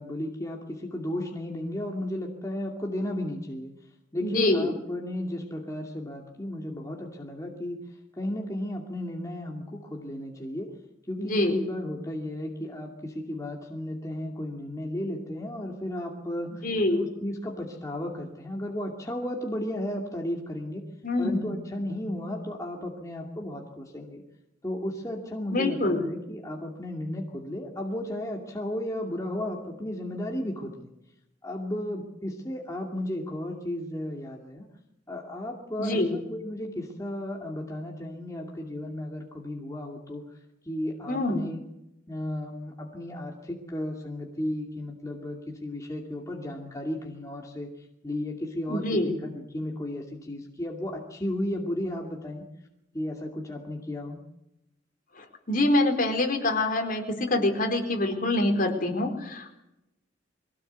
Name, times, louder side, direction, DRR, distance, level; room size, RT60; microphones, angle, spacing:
voice 1, 0.0-3.7 4.1-7.8 8.2-10.7 11.1-20.8 21.2-24.2 24.6-30.9 31.4-34.7 35.1-40.2 40.7-41.6 42.1-52.5 52.9-54.2, left 1 dB, 15° left, 0 dB, 2.5 m, -34 dB
voice 2, 4.2-4.7 11.2-11.6 16.6-17.0 21.0-21.5 25.5-26.1 35.8-36.2 41.1-41.5 48.7-49.1 55.2-59.6, left 2 dB, 45° left, 3 dB, 4.3 m, -25 dB
22.5 x 17.5 x 8.2 m, 0.86 s
head